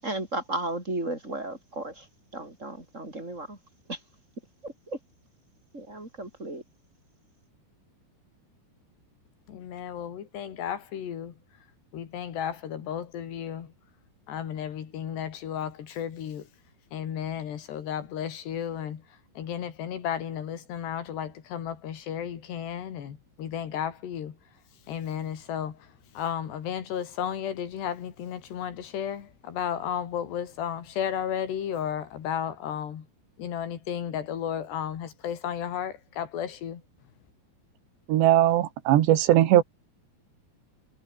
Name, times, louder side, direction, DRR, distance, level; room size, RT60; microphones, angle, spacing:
voice 1, 0.0-2.1 2.3-3.6 3.9-4.0 4.6-5.0 5.7-6.6, right 2 dB, 15° right, 8.0 m, -34 dB
voice 2, 9.5-11.3 11.9-13.7 14.3-16.4 16.9-19.0 19.4-24.3 24.9-25.8 26.2-33.1 33.4-36.8, left 9 dB, 75° left, 4.8 m, -33 dB
voice 3, 38.1-39.6, right 13 dB, 85° right, 3.8 m, -19 dB
omnidirectional pair, 4.9 m